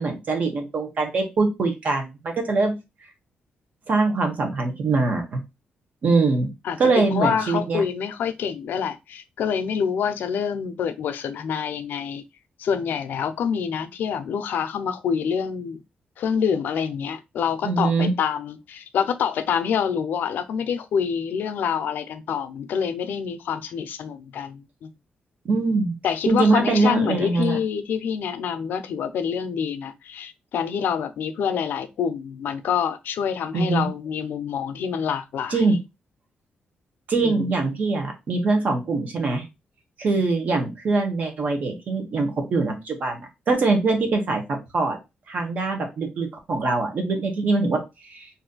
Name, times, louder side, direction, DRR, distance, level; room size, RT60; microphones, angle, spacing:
voice 1, 0.0-2.8 3.9-5.4 6.0-6.5 6.8-7.8 17.6-18.1 25.4-25.9 26.3-27.6 33.5-33.9 35.5-35.8 37.1-39.4 40.0-45.0 45.3-48.3, right 3 dB, 50° right, 1.1 m, -23 dB
voice 2, 6.6-12.2 12.6-15.8 16.2-24.9 26.0-35.8 37.2-37.4, left 7 dB, 80° left, 0.5 m, -26 dB
3.1 x 2.7 x 3.8 m
wide cardioid pair, 165°, 3 cm